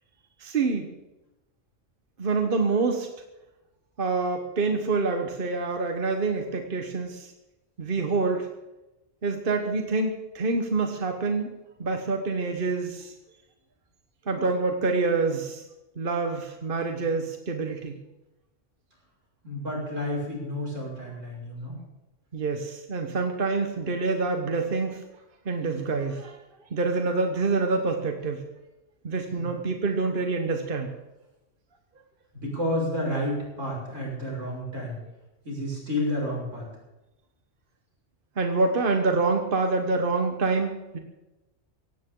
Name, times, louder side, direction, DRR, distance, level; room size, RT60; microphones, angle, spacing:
voice 1, 0.4-0.9 2.2-3.1 4.0-7.3 7.8-8.5 9.2-11.5 11.8-13.1 14.3-15.6 16.0-18.0 22.3-25.0 25.4-26.4 26.7-28.4 29.0-30.9 38.4-41.0, right 3 dB, 50° right, 4 dB, 1.4 m, -26 dB
voice 2, 19.4-21.8 29.4-29.5 32.3-35.0 35.4-36.6, left 1 dB, 85° right, -4 dB, 6.5 m, -30 dB
17.0 x 17.0 x 3.9 m, 1.0 s
omnidirectional pair, 1.2 m